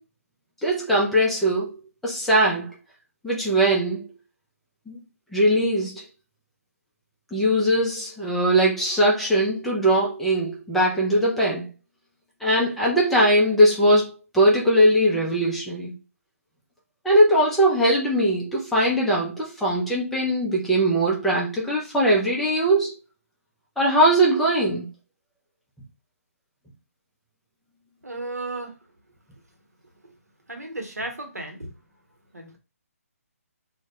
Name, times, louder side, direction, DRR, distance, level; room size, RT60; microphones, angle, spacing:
voice 1, 0.6-1.8 2.0-2.7 3.2-4.1 4.9-5.0 5.3-6.0 7.3-11.7 12.4-15.9 17.0-23.0 23.8-24.9, right 1 dB, ahead, 0.4 m, -20 dB
voice 2, 28.0-28.7 30.5-31.7 32.3-32.6, right 2 dB, 85° right, 0.8 m, -34 dB
2.1 x 2.1 x 2.8 m
figure-of-eight pair, 140°, 8 cm